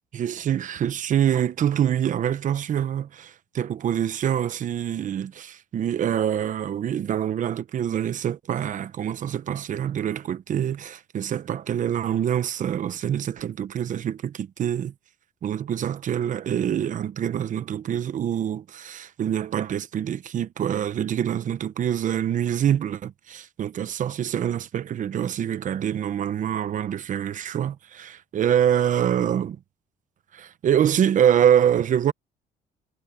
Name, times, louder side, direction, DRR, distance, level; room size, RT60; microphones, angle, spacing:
voice 1, 0.1-14.9 15.4-29.6 30.3-32.1, right 9 dB, 50° right, 1.1 m, -25 dB
cardioid pair, 110°, 17 cm